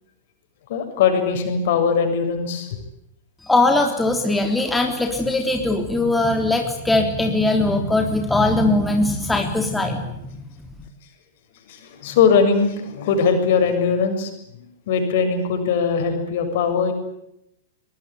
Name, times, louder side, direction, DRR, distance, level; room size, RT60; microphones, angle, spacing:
voice 1, 0.7-2.7 11.7-14.3 14.9-16.9, left 5 dB, 55° left, 6 dB, 7.2 m, -20 dB
voice 2, 3.4-10.4, left 2 dB, 5° left, 3 dB, 3.4 m, -20 dB
23.0 x 22.5 x 9.9 m, 0.81 s
figure-of-eight pair, 100°, 0 cm